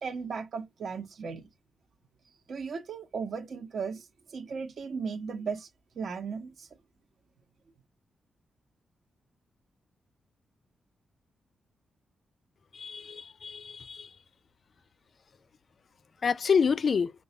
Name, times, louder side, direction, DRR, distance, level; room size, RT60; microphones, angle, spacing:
voice 1, 0.0-1.5 2.5-5.7 6.0-6.7, right 5 dB, 65° right, 0.9 m, -36 dB
voice 2, 12.7-14.1 16.2-17.1, left 6 dB, 50° left, 0.4 m, -27 dB
5.3 x 2.2 x 4.0 m
cardioid pair, 100°, 0 cm